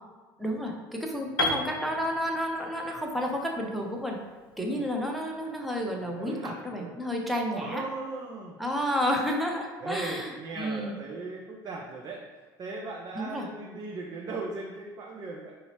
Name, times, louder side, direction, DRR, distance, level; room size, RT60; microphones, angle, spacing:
voice 1, 0.4-4.2 4.6-7.8 8.6-11.0 13.1-13.5, equal, ahead, 0 dB, 0.7 m, -31 dB
Piano, 1.4-5.3, left 2 dB, 85° left, 0.4 m, -34 dB
voice 2, 6.0-6.9 7.5-8.6 9.8-12.2 12.6-15.5, right 3 dB, 35° right, -1 dB, 0.5 m, -38 dB
4.9 x 2.7 x 2.9 m, 1.4 s
figure-of-eight pair, 65°, 12 cm